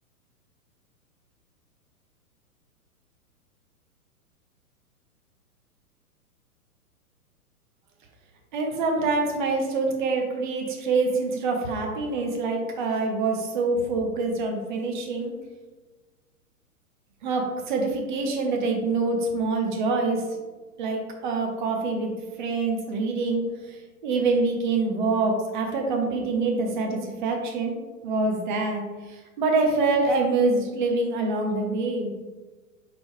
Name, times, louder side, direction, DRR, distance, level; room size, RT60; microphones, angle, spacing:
voice 1, 8.5-15.3 17.2-20.3 20.8-22.1 22.4-27.8 28.0-32.1, right 3 dB, 35° right, 2 dB, 0.7 m, -25 dB
3.9 x 3.8 x 3.1 m, 1.3 s
figure-of-eight pair, 110°, 45 cm